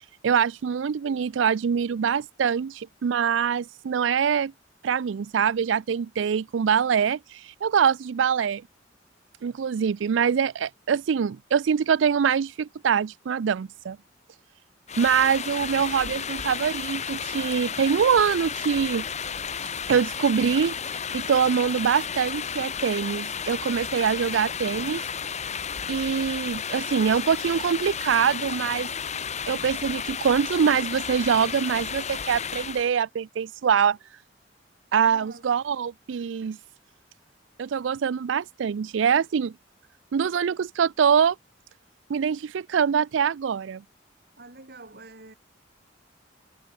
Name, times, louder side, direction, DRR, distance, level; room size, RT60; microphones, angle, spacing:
voice 1, 0.2-4.5 4.8-8.6 9.4-14.0 15.0-19.1 19.9-25.0 25.9-28.9 29.5-34.0 34.9-36.6 37.6-39.5 40.1-41.4 42.1-43.8, right 7 dB, 80° right, 0.4 m, -24 dB
sound 1, 14.9-32.9, left 7 dB, 40° left, 1.4 m, -33 dB
voice 2, 35.0-35.5 37.7-37.8 44.4-45.4, right 2 dB, 55° right, 4.9 m, -46 dB
head